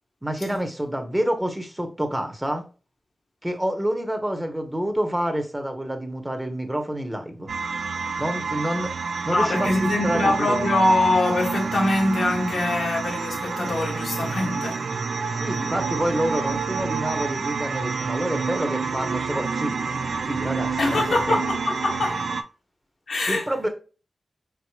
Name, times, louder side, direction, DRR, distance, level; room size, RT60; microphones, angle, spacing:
voice 1, 0.2-2.6 3.4-7.5 8.2-10.7 15.4-19.7 20.2-21.4 23.3-23.7, right 1 dB, 10° right, 1.0 m, -28 dB
sound 1, 7.5-22.4, right 5 dB, 85° right, 0.5 m, -28 dB
voice 2, 9.3-14.8 20.8-22.2 23.1-23.7, left 2 dB, 85° left, 1.3 m, -23 dB
4.8 x 3.8 x 2.3 m
wide cardioid pair, 75°, 0 cm